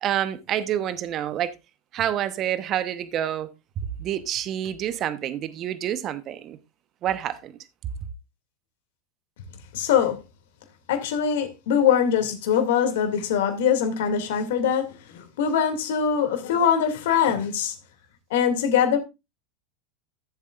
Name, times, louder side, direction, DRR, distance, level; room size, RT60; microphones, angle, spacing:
voice 1, 0.0-1.5 1.9-3.5 3.8-6.6 7.0-7.5, right 11 dB, 40° right, 1.0 m, -28 dB
voice 2, 9.7-10.2 10.9-17.7 18.3-19.0, left 8 dB, 70° left, 2.4 m, -22 dB
14.5 x 7.5 x 2.5 m
hypercardioid pair, 100°, 0 cm